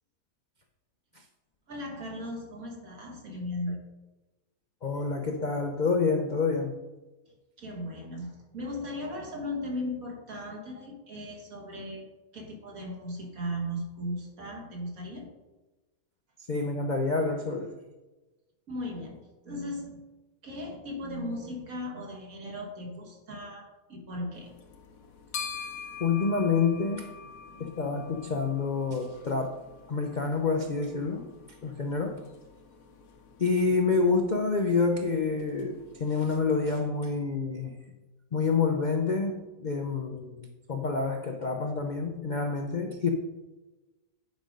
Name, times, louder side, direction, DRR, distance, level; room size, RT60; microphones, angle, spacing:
voice 1, 1.7-3.8 7.6-12.1 12.3-15.3 18.7-20.0 20.4-24.5 27.2-27.3 27.5-27.7, left 1 dB, 65° right, 0 dB, 2.2 m, -37 dB
voice 2, 4.8-6.8 16.5-17.8 26.0-27.1 27.6-29.6 29.9-31.3 31.6-32.2 33.4-37.7 38.3-43.1, left 4 dB, 50° left, 3 dB, 0.5 m, -28 dB
sound 1, 24.3-36.9, left 6 dB, 65° left, 1.3 m, -46 dB
9.5 x 5.1 x 5.2 m, 1.1 s
omnidirectional pair, 1.6 m